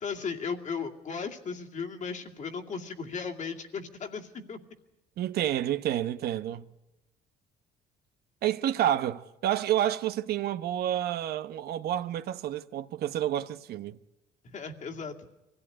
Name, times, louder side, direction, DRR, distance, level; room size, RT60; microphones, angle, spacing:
voice 1, 0.0-4.6 14.4-15.3, left 5 dB, 45° left, 2.4 m, -36 dB
voice 2, 5.2-6.7 8.4-14.0, right 11 dB, 70° right, 0.9 m, -29 dB
24.0 x 16.5 x 9.8 m
cardioid pair, 110°, 17 cm